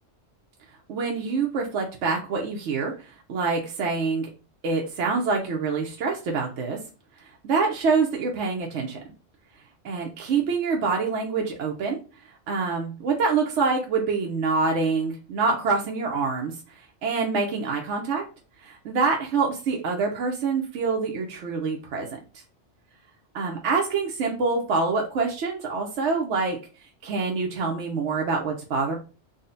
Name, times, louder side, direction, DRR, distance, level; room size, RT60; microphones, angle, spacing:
voice 1, 0.9-4.3 4.6-6.8 7.2-9.0 9.8-12.0 12.2-18.2 18.6-22.2 23.3-29.0, right 4 dB, 75° right, 0 dB, 1.0 m, -26 dB
3.8 x 2.1 x 3.8 m, 0.35 s
omnidirectional pair, 1.2 m